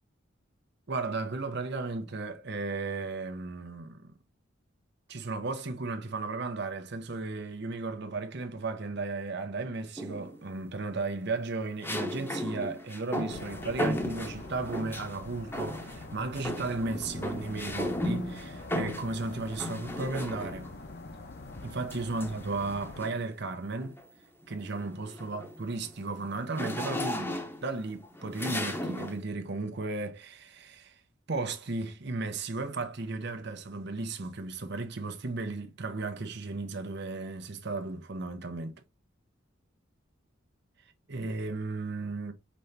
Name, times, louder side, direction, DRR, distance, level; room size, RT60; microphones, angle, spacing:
voice 1, 0.9-4.1 5.1-20.7 21.6-24.0 24.5-30.9 31.3-38.8 41.1-42.3, right 3 dB, 60° right, 0.9 m, -35 dB
sound 1, 10.0-10.5 11.8-15.2 15.5-16.1 16.3-20.8 21.9-23.3 23.8-24.1 24.4-29.2, left 1 dB, 10° left, 0.9 m, -36 dB
sound 2, 13.3-23.0, left 2 dB, 55° left, 0.9 m, -44 dB
5.3 x 3.3 x 2.7 m
head